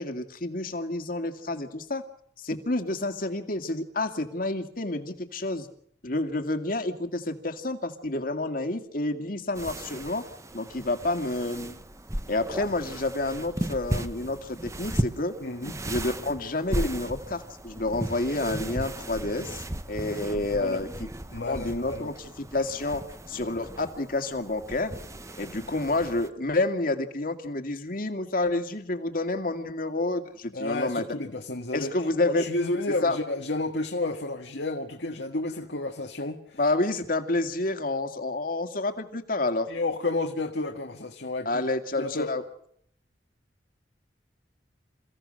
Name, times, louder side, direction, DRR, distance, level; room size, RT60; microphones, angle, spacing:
voice 1, 0.0-2.0 2.4-5.7 6.0-10.3 10.5-11.8 12.3-15.4 15.9-19.6 19.9-21.1 21.4-23.0 23.3-24.9 25.4-31.1 31.7-32.5 33.0-33.2 36.6-39.7 41.5-42.4, left 2 dB, 50° left, 2.2 m, -29 dB
sound 1, 9.5-26.3, right 1 dB, 15° right, 1.1 m, -36 dB
voice 2, 15.4-15.8 20.5-20.8 21.3-22.1 30.5-36.6 39.7-41.6 42.0-42.4, left 2 dB, 75° left, 1.7 m, -31 dB
28.0 x 16.0 x 6.5 m
head